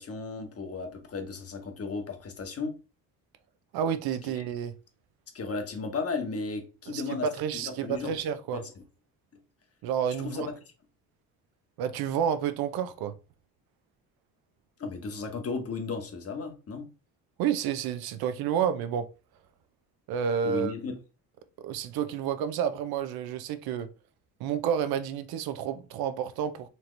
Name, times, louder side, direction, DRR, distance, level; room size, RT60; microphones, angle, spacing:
voice 1, 0.0-2.8 4.4-4.5 5.3-7.3 7.5-8.2 8.5-8.7 10.2-10.5 14.8-16.9 20.4-21.0, left 4 dB, 40° left, 1.2 m, -35 dB
voice 2, 3.7-4.7 6.9-8.6 9.8-10.5 11.8-13.1 17.4-19.1 20.1-20.7 21.6-23.9 24.4-26.7, right 8 dB, 80° right, 0.6 m, -30 dB
4.2 x 2.9 x 3.2 m
cardioid pair, 100°, 37 cm